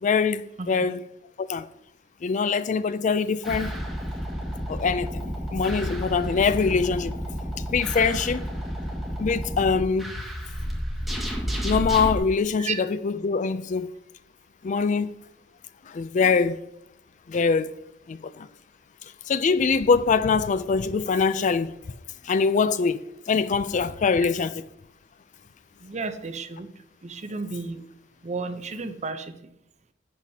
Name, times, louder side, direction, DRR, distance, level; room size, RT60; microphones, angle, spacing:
voice 1, 0.0-1.0 1.4-1.7 2.2-3.7 4.7-7.2 7.7-8.5 9.2-10.1 11.6-13.9 14.6-15.1 15.9-16.6 17.3-17.7 18.1-18.5 19.3-21.8 22.2-24.7, left 5 dB, 45° left, 0.4 m, -23 dB
sound 1, 3.4-12.2, equal, ahead, 1.9 m, -31 dB
voice 2, 25.8-26.7 27.0-27.8 28.2-29.4, right 4 dB, 40° right, 0.7 m, -32 dB
11.0 x 8.1 x 2.8 m
head